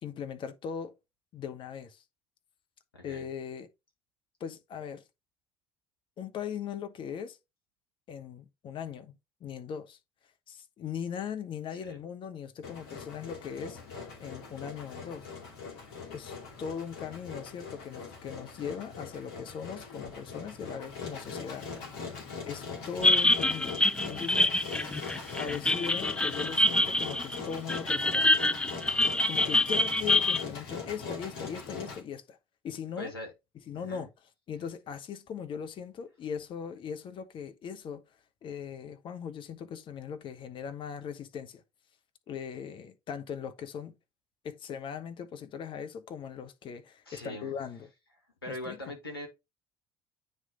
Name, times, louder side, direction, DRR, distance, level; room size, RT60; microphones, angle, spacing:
voice 1, 0.0-0.9 1.3-2.0 3.0-3.7 4.4-5.0 6.2-7.4 8.1-10.0 10.5-13.8 14.2-15.3 16.1-21.7 22.4-24.5 25.4-28.4 29.3-32.4 32.6-33.1 33.7-34.1 34.5-38.0 38.4-41.6 42.3-43.9 44.4-47.9 48.5-48.8, left 7 dB, 45° left, 1.0 m, -39 dB
voice 2, 2.9-3.3 11.9-12.0 22.4-22.6 33.0-33.3 33.7-34.1 47.1-47.5 48.4-49.3, left 1 dB, 90° left, 1.2 m, -41 dB
Engine, 12.6-32.0, left 5 dB, 60° left, 2.5 m, -41 dB
sound 1, 23.0-30.4, left 1 dB, 10° left, 0.4 m, -26 dB
9.3 x 3.2 x 3.7 m
figure-of-eight pair, 60°, 12 cm